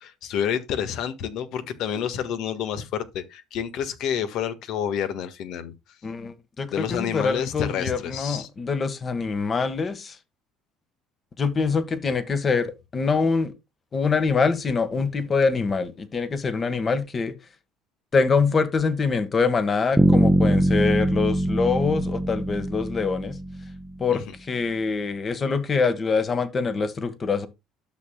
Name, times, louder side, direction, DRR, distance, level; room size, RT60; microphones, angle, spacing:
voice 1, 0.0-5.7 6.7-8.5 24.1-24.2, left 9 dB, 70° left, 1.5 m, -29 dB
voice 2, 6.0-10.2 11.4-13.5 13.9-17.3 18.1-23.4 24.0-27.5, left 4 dB, 35° left, 1.6 m, -24 dB
Bass guitar, 20.0-23.9, right 1 dB, 5° right, 0.9 m, -22 dB
12.0 x 6.6 x 2.3 m
supercardioid pair, 95°, 0 cm